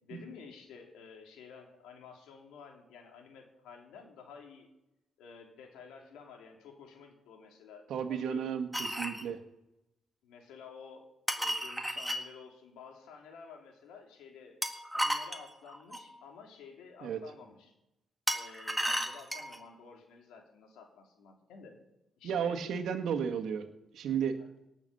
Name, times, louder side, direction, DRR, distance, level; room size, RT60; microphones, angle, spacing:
voice 1, 0.0-4.7 5.2-8.5 10.2-11.0 11.4-14.6 14.9-17.7 18.3-21.8 22.2-22.6, left 6 dB, 90° left, 2 dB, 3.2 m, -52 dB
voice 2, 7.9-8.7 9.0-9.4 17.0-17.2 22.2-23.6 23.9-24.3, right 7 dB, 75° right, 6 dB, 1.7 m, -33 dB
sound 1, 8.7-9.2 11.3-12.2 14.6-16.1 18.3-19.6, equal, ahead, 1.9 m, -33 dB
18.0 x 7.1 x 6.9 m, 0.90 s
cardioid pair, 90°, 0 cm